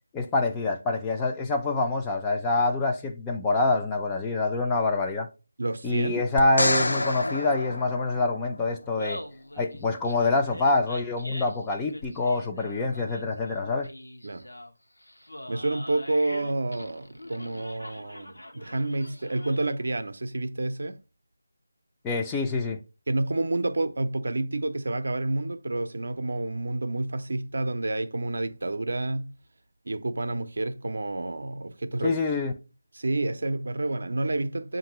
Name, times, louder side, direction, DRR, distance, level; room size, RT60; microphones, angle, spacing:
voice 1, 0.1-5.3 5.8-9.2 9.6-13.9 22.0-22.8 32.0-32.5, left 3 dB, 10° left, 0.4 m, -26 dB
voice 2, 5.6-6.2 14.2-14.4 15.5-21.0 23.1-29.3 29.9-32.5 32.9-34.8, right 2 dB, 60° right, 0.5 m, -29 dB
sound 1, 6.4-8.7 12.0-12.1, left 2 dB, 65° left, 0.5 m, -28 dB
Laughter, 8.8-19.9, left 1 dB, 85° left, 0.9 m, -43 dB
7.0 x 2.5 x 2.9 m
figure-of-eight pair, 160°, 0 cm